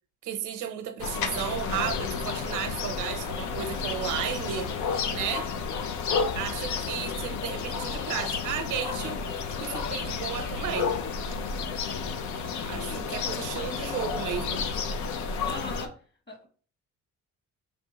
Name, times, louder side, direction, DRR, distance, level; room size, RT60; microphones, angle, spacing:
voice 1, 0.2-4.7 5.1-5.5 6.3-9.2 9.6-11.0 12.7-14.7, right 9 dB, 85° right, 0.8 m, -33 dB
sound 1, 1.0-15.9, left 5 dB, 70° left, 0.8 m, -31 dB
voice 2, 15.4-16.0 16.3-16.5, left 2 dB, 35° left, 1.8 m, -38 dB
5.2 x 3.4 x 2.9 m
cardioid pair, 90°, 30 cm